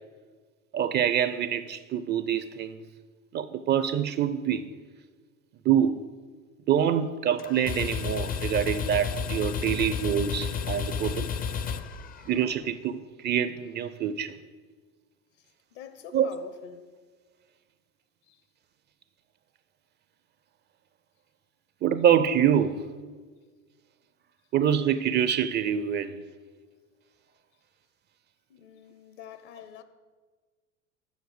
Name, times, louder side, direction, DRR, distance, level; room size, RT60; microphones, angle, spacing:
voice 1, 0.7-2.8 3.3-4.7 5.6-6.1 6.7-11.3 12.3-14.4 16.1-16.3 21.8-22.9 24.5-26.2, right 9 dB, 30° right, 0.4 m, -25 dB
sound 1, 7.4-12.6, left 6 dB, 25° left, 0.5 m, -32 dB
voice 2, 15.4-16.9 18.3-18.4 28.5-29.8, left 9 dB, 65° left, 1.0 m, -45 dB
7.2 x 6.4 x 7.8 m
hypercardioid pair, 90°, 38 cm